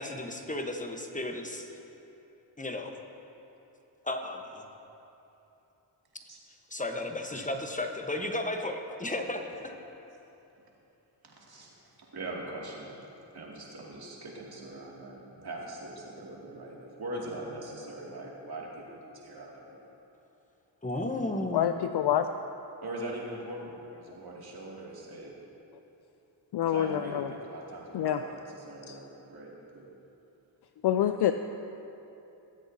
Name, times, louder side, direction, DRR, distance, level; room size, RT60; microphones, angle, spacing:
voice 1, 0.0-1.8 2.6-2.9 4.0-4.7 6.7-9.7 20.8-21.7, left 1 dB, 15° left, 4 dB, 1.2 m, -34 dB
voice 2, 11.2-11.7 12.0-12.9 13.3-19.9 22.8-25.3 26.7-29.8, right 1 dB, 50° right, -4 dB, 2.6 m, -41 dB
voice 3, 21.5-22.3 26.5-27.3 27.9-28.2 28.9-29.0 30.8-31.3, left 11 dB, 60° left, 9 dB, 0.5 m, -26 dB
19.0 x 8.1 x 2.8 m, 3.0 s
cardioid pair, 50°, 47 cm